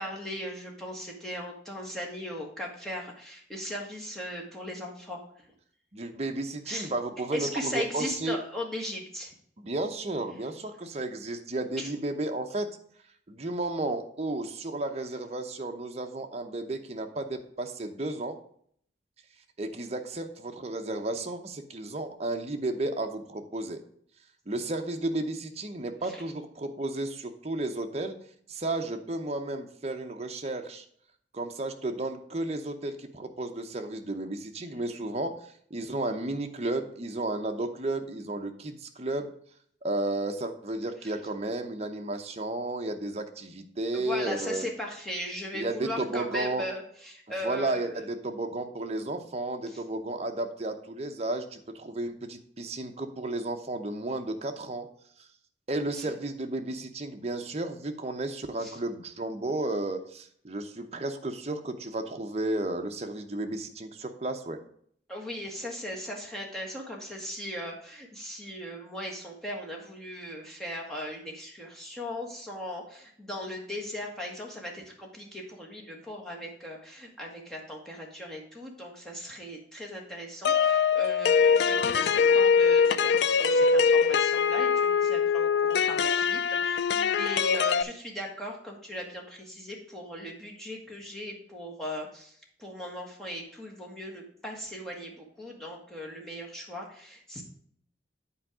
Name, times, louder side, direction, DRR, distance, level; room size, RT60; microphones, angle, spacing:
voice 1, 0.0-5.2 6.7-6.9 7.3-9.3 11.8-11.9 26.0-26.2 41.0-41.1 43.9-48.0 49.7-49.8 55.9-56.1 58.6-58.8 65.1-92.3 92.6-97.4, equal, 5° left, -2 dB, 1.6 m, -38 dB
voice 2, 5.9-8.4 9.6-12.7 13.3-18.4 19.6-23.8 24.5-28.2 28.5-30.8 31.3-35.3 35.7-39.3 39.8-44.7 45.5-46.7 47.4-54.9 55.7-64.6, right 2 dB, 35° right, 5 dB, 0.8 m, -33 dB
sound 1, 80.4-87.8, left 6 dB, 65° left, 0.3 m, -23 dB
8.6 x 4.6 x 4.9 m, 0.64 s
head